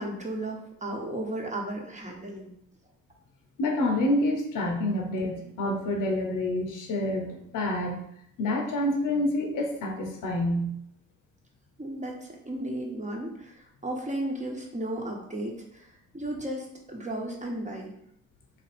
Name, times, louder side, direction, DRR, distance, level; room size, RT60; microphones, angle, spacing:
voice 1, 0.0-2.6 11.8-15.9 16.1-18.0, right 1 dB, 20° right, 0 dB, 1.1 m, -34 dB
voice 2, 3.6-8.1 8.4-10.8, left 1 dB, 65° left, 2 dB, 0.9 m, -28 dB
3.1 x 2.6 x 4.2 m, 0.73 s
supercardioid pair, 60°, 34 cm